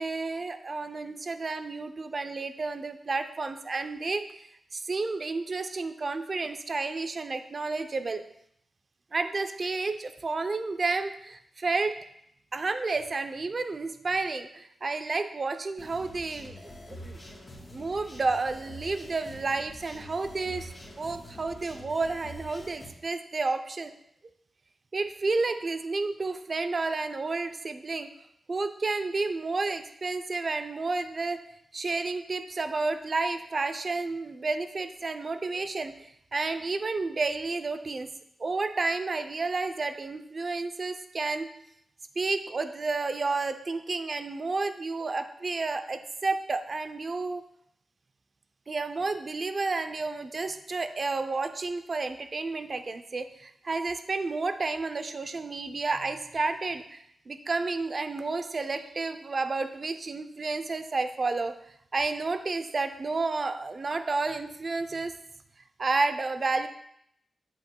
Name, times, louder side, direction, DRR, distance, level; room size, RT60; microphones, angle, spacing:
voice 1, 0.0-8.2 9.1-12.0 12.5-17.2 17.7-20.7 21.0-23.9 24.9-28.1 28.5-31.4 31.7-38.1 38.4-41.5 42.2-47.4 48.7-61.5 61.9-65.1 65.8-66.7, right 3 dB, 40° right, 8 dB, 0.5 m, -31 dB
sound 1, 15.8-22.9, equal, 30° left, 1.9 m, -46 dB
8.2 x 7.8 x 2.3 m, 0.73 s
wide cardioid pair, 110°, 0 cm